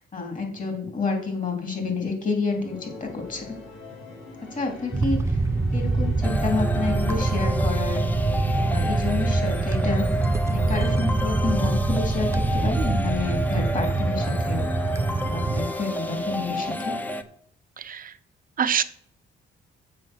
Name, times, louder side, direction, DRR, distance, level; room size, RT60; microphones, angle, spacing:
voice 1, 0.1-3.6 4.5-5.4 5.7-8.1 8.5-10.2 10.5-14.7 15.2-16.9, left 4 dB, 40° left, 3 dB, 3.2 m, -29 dB
sound 1, 2.5-17.2, left 3 dB, 85° left, 3.5 m, -44 dB
sound 2, 4.9-15.7, right 3 dB, 15° right, 0.4 m, -24 dB
sound 3, 6.2-17.2, equal, 10° left, 0.8 m, -31 dB
voice 2, 17.8-18.1 18.6-18.8, right 8 dB, 45° right, 11 dB, 0.8 m, -25 dB
7.5 x 5.8 x 6.2 m, 0.64 s
cardioid pair, 90°, 20 cm